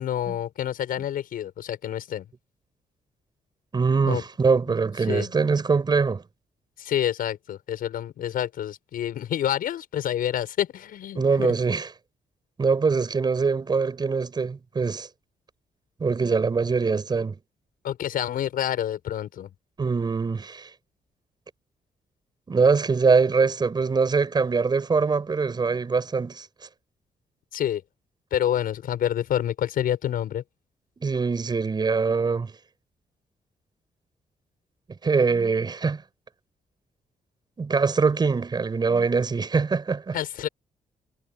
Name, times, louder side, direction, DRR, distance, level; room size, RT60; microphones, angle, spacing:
voice 1, 0.0-2.3 4.1-4.2 5.1-5.3 6.8-11.5 17.8-19.5 27.5-27.8 28.3-30.4 40.1-40.5, left 10 dB, 85° left, 6.9 m, -28 dB
voice 2, 3.7-6.2 11.1-11.9 12.6-15.1 16.0-17.4 19.8-20.7 22.5-26.5 31.0-32.5 35.0-36.0 37.6-40.2, right 4 dB, 30° right, 7.9 m, -23 dB
wide cardioid pair, 150°, 15 cm